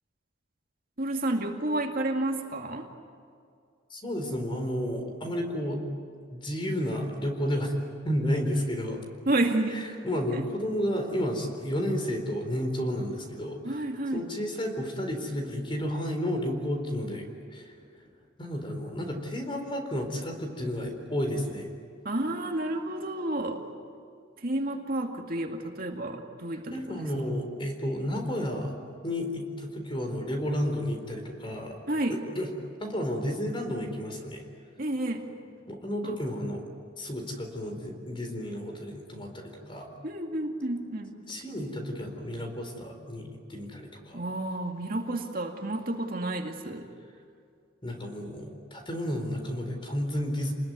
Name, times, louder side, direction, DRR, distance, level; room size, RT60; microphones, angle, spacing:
voice 1, 1.0-2.9 9.3-9.8 10.3-10.4 13.6-14.2 22.0-23.6 24.4-27.1 31.9-32.2 34.8-35.3 36.0-36.2 40.0-41.1 44.1-46.9, right 1 dB, 50° right, 2 dB, 2.3 m, -30 dB
voice 2, 3.9-5.8 6.3-7.7 8.0-9.0 9.7-13.8 14.1-17.7 18.4-21.7 26.7-28.7 29.0-31.8 32.3-32.5 32.8-34.4 35.7-36.7 37.0-39.9 41.3-44.2 47.8-50.5, equal, 25° left, 4 dB, 4.1 m, -32 dB
29.0 x 20.5 x 9.5 m, 2.3 s
head